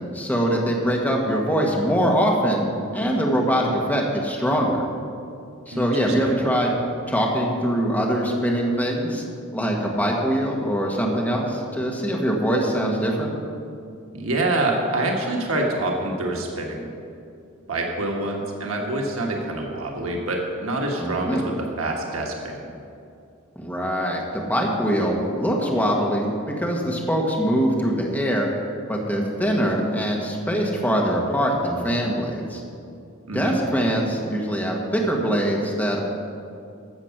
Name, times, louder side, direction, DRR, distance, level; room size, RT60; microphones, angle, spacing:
voice 1, 0.1-4.9 5.7-6.8 7.0-9.2 9.5-13.3 21.0-21.5 23.5-26.3 26.6-28.5 28.9-32.6 33.3-36.0, equal, 10° left, -2 dB, 1.6 m, -23 dB
voice 2, 5.7-6.4 14.1-16.9 17.7-22.7 33.2-33.5, right 2 dB, 85° right, 0 dB, 1.5 m, -26 dB
13.0 x 7.4 x 6.0 m, 2.5 s
head